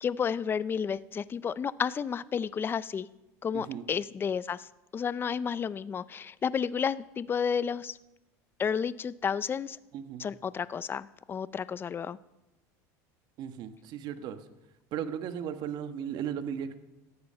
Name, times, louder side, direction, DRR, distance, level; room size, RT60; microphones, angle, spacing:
voice 1, 0.0-3.1 3.4-4.7 4.9-8.0 8.6-9.8 10.2-12.2, left 7 dB, 25° left, 18 dB, 0.5 m, -31 dB
voice 2, 3.5-3.8 9.9-10.3 13.4-14.4 14.9-16.7, right 8 dB, 55° right, 10 dB, 1.3 m, -36 dB
17.5 x 13.0 x 5.6 m, 0.99 s
supercardioid pair, 115°, 9 cm